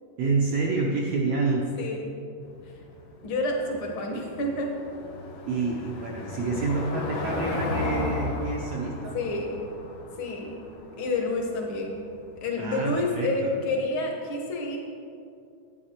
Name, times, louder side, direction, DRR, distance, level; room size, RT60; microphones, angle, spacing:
voice 1, 0.2-1.7 5.5-9.2 12.6-13.5, right 3 dB, 75° right, -2 dB, 1.5 m, -28 dB
voice 2, 1.7-2.1 3.2-4.7 9.1-9.6 10.2-10.6 11.0-12.0 12.4-14.8, left 2 dB, 55° left, 0 dB, 1.5 m, -29 dB
Car passing by / Engine, 2.4-13.1, left 3 dB, 75° left, 3.2 m, -35 dB
9.9 x 9.0 x 4.3 m, 2.5 s
omnidirectional pair, 3.8 m